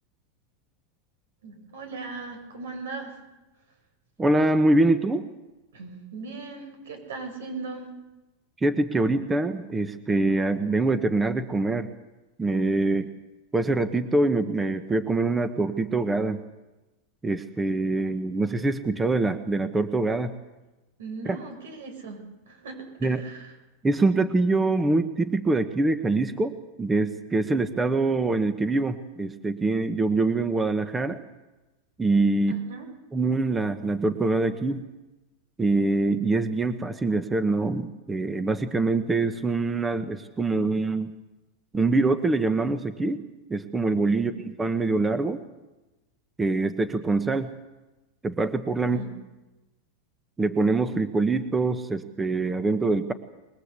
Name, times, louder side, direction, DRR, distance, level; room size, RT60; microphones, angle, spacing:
voice 1, 1.4-3.2 5.7-7.9 21.0-23.5 32.5-32.9 44.2-44.3 48.9-49.1, right 3 dB, 90° right, 5 dB, 7.2 m, -38 dB
voice 2, 4.2-5.3 8.6-11.9 12.4-13.1 13.5-16.4 17.2-20.3 21.3-21.4 23.0-23.2 23.8-31.2 32.0-32.6 33.1-34.8 35.6-41.1 41.7-43.2 43.5-44.3 44.6-45.4 46.4-47.5 48.2-49.0 50.4-53.1, right 2 dB, 10° right, 10 dB, 1.1 m, -24 dB
23.0 x 21.0 x 8.3 m, 1.1 s
supercardioid pair, 145°, 0 cm